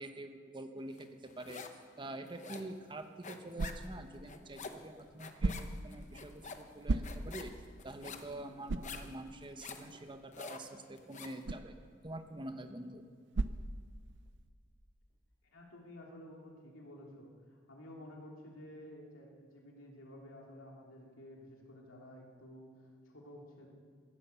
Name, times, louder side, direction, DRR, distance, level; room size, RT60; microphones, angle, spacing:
voice 1, 0.0-1.7 2.0-7.5 7.8-11.7 12.0-13.0, right 1 dB, 25° right, 7 dB, 0.8 m, -46 dB
sound 1, 1.0-1.9 2.1-11.4, left 4 dB, 35° left, 0.9 m, -49 dB
sound 2, 2.7-14.4, right 2 dB, 60° right, 0.6 m, -41 dB
voice 2, 15.4-23.7, left 1 dB, 75° left, -1 dB, 2.8 m, -52 dB
16.0 x 11.0 x 6.8 m, 2.1 s
head